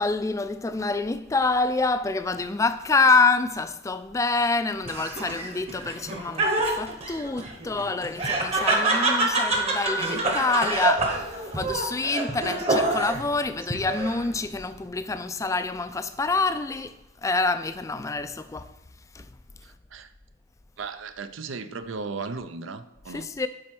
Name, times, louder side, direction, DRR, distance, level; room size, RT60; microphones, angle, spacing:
voice 1, 0.0-16.9 17.2-18.7 19.1-19.2 23.1-23.5, left 3 dB, 15° left, 0.3 m, -26 dB
Laughter, 4.9-13.3 13.7-14.4, right 2 dB, 30° right, 1.0 m, -26 dB
voice 2, 20.8-23.3, right 4 dB, 70° right, 0.6 m, -36 dB
7.6 x 4.3 x 6.0 m
head